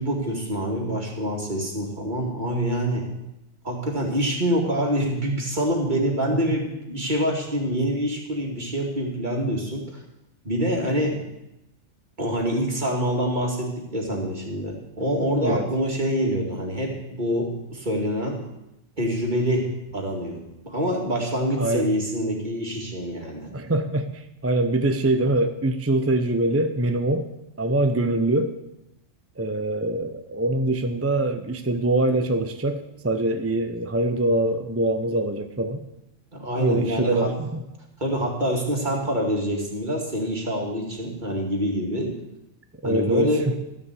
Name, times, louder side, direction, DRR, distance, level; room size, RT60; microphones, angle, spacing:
voice 1, 0.0-3.1 3.6-9.8 10.4-11.3 12.2-18.4 19.0-19.7 19.9-23.5 36.3-37.3 38.0-42.2 42.8-43.5, equal, 35° right, 0 dB, 2.5 m, -26 dB
voice 2, 21.6-21.9 23.5-27.3 27.6-28.6 29.4-35.8 36.6-37.6 42.8-43.4, right 1 dB, 20° right, 8 dB, 0.4 m, -24 dB
13.0 x 7.3 x 8.3 m, 0.88 s
omnidirectional pair, 1.3 m